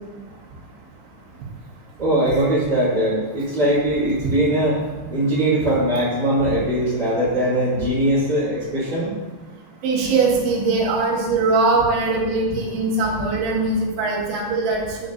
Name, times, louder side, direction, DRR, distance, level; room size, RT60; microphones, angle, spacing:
voice 1, 2.0-4.8 5.1-9.1, right 1 dB, 30° right, -12 dB, 2.4 m, -20 dB
voice 2, 9.8-15.1, right 3 dB, 85° right, -3 dB, 4.2 m, -21 dB
16.5 x 6.6 x 2.6 m, 1.2 s
omnidirectional pair, 5.2 m